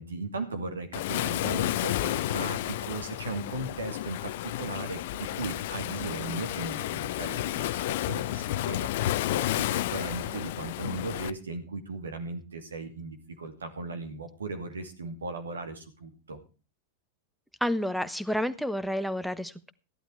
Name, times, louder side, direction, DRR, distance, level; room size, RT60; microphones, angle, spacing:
voice 1, 0.0-16.4, right 3 dB, 85° right, 6 dB, 2.5 m, -37 dB
Waves surf, 0.9-11.3, left 14 dB, 60° left, 0.7 m, -31 dB
voice 2, 17.6-19.7, equal, ahead, 10 dB, 1.1 m, -30 dB
14.5 x 11.5 x 4.6 m, 0.32 s
hypercardioid pair, 95°, 0 cm